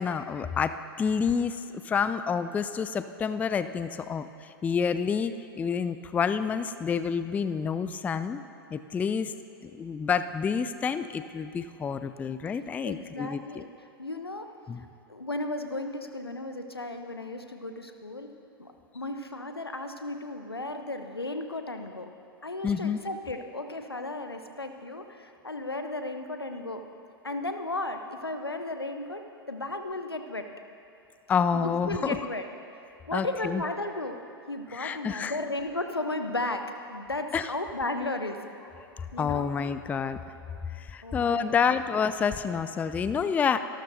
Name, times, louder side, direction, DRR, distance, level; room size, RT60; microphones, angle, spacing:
voice 1, 0.0-8.4 8.7-9.3 9.6-13.6 14.7-14.8 22.6-23.0 31.3-32.2 33.1-33.6 34.7-35.4 37.3-37.5 39.0-40.2 40.7-43.6, left 6 dB, 10° left, 12 dB, 0.3 m, -28 dB
voice 2, 12.8-13.7 14.0-14.5 15.1-18.3 18.6-22.1 22.4-26.8 27.2-30.5 31.5-32.5 33.1-34.2 34.5-36.6 36.9-38.4 39.1-39.4 41.0-41.5, left 2 dB, 85° left, 7 dB, 0.9 m, -34 dB
25.5 x 12.5 x 2.7 m, 2.6 s
figure-of-eight pair, 95°, 12 cm